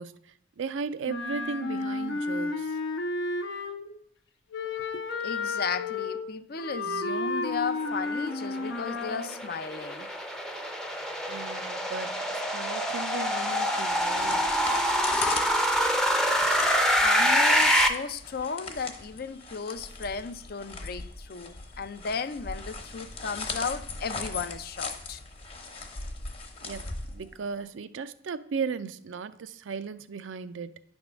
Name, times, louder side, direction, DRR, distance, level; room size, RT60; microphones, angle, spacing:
voice 1, 0.0-2.8 11.3-14.5 26.6-30.8, right 5 dB, 75° right, 0.4 m, -36 dB
Wind instrument woodwind instrument, 1.0-4.0 4.5-9.4, left 3 dB, 75° left, 0.8 m, -32 dB
voice 2, 4.9-10.1 16.6-25.2, left 5 dB, 50° left, 0.5 m, -35 dB
sound 1, 8.3-17.9, equal, 5° left, 0.6 m, -26 dB
sound 2, 13.9-27.6, left 3 dB, 30° left, 0.9 m, -39 dB
9.6 x 3.6 x 6.1 m
head